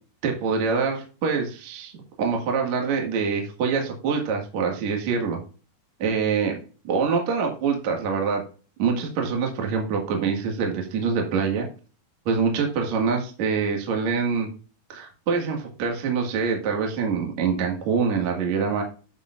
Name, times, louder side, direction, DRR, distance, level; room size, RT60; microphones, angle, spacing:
voice 1, 0.2-1.9 2.2-5.4 6.0-6.6 6.8-8.4 8.8-11.7 12.3-14.5 14.9-18.8, right 5 dB, 50° right, 1 dB, 2.7 m, -25 dB
10.0 x 7.1 x 2.5 m, 0.36 s
omnidirectional pair, 4.7 m